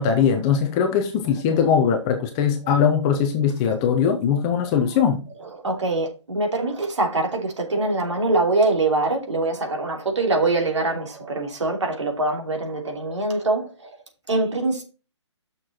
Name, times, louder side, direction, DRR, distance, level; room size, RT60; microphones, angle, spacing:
voice 1, 0.0-5.2, left 7 dB, 10° left, 0.4 m, -20 dB
voice 2, 1.2-1.6 4.6-4.8 5.4-14.0 14.3-14.8, right 2 dB, 75° right, 3.0 m, -24 dB
6.5 x 6.4 x 4.2 m
hypercardioid pair, 165°, 15 cm